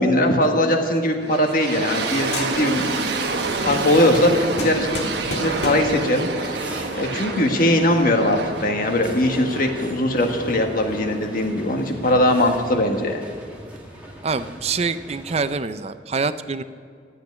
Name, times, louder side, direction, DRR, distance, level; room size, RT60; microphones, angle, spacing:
voice 1, 0.0-2.9 3.3-3.4 3.6-6.5 6.9-13.2, left 1 dB, 50° left, 3 dB, 1.6 m, -20 dB
sound 1, 0.7-2.1 2.3-3.0 3.3-6.0, left 2 dB, 70° left, 1.7 m, -34 dB
sound 2, 1.2-12.1, right 3 dB, 75° right, 1.2 m, -29 dB
sound 3, 1.7-15.5, equal, 10° right, 2.0 m, -40 dB
voice 2, 14.2-16.6, right 4 dB, 35° right, 12 dB, 0.5 m, -25 dB
13.5 x 8.4 x 9.8 m, 2.2 s
head